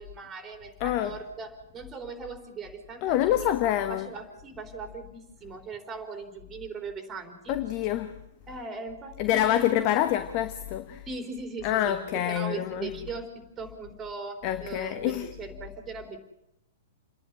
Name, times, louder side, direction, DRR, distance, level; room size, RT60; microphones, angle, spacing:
voice 1, 0.0-7.5 8.5-9.9 11.1-16.2, right 4 dB, 20° right, 3.7 m, -39 dB
voice 2, 0.8-1.1 3.0-4.1 7.5-8.2 9.2-11.1 11.6-12.9 14.4-15.3, left 12 dB, 40° left, 1.2 m, -26 dB
28.5 x 11.0 x 9.8 m
figure-of-eight pair, 110°, 0 cm